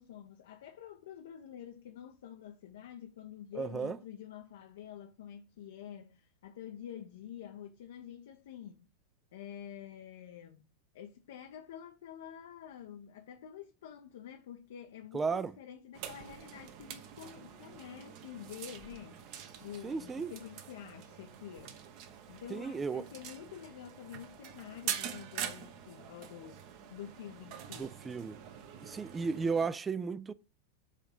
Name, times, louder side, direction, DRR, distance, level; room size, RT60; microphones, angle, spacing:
voice 1, 0.0-8.9 9.3-10.7 10.9-19.3 19.6-21.8 22.3-26.6 26.9-28.0, left 9 dB, 60° left, 0.6 m, -48 dB
voice 2, 3.6-4.0 15.1-15.5 19.8-20.3 22.5-23.0 27.8-28.4 28.8-30.3, right 5 dB, 15° right, 0.3 m, -34 dB
sound 1, 15.9-29.7, right 9 dB, 45° right, 0.9 m, -45 dB
5.0 x 3.8 x 5.4 m
figure-of-eight pair, 90°, 0 cm